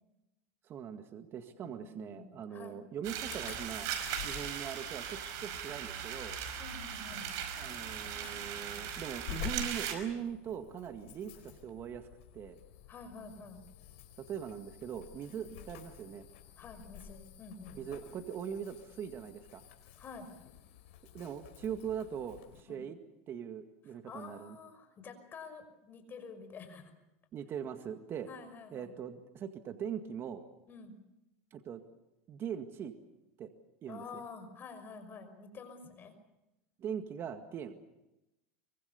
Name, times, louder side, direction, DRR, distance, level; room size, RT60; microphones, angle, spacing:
voice 1, 0.6-3.9 4.2-6.4 7.6-12.1 12.3-12.6 14.2-16.3 17.7-19.6 21.1-23.0 23.3-24.6 27.3-28.3 28.7-30.4 31.5-31.8 32.3-32.9 33.4-33.5 33.8-34.2 36.8-37.7, right 8 dB, 35° right, 8 dB, 1.9 m, -41 dB
voice 2, 1.8-2.8 6.6-7.3 12.9-13.6 15.4-15.5 16.6-17.8 20.0-20.3 22.7-22.8 24.0-26.9 28.3-28.9 30.7-30.9 33.9-36.1, left 4 dB, 30° left, 8 dB, 5.7 m, -49 dB
sound 1, 3.0-9.9, right 9 dB, 55° right, 5.2 m, -39 dB
Insect / Alarm, 3.2-22.6, left 8 dB, 75° left, 4.9 m, -50 dB
24.5 x 24.0 x 7.0 m, 0.93 s
supercardioid pair, 130°, 7 cm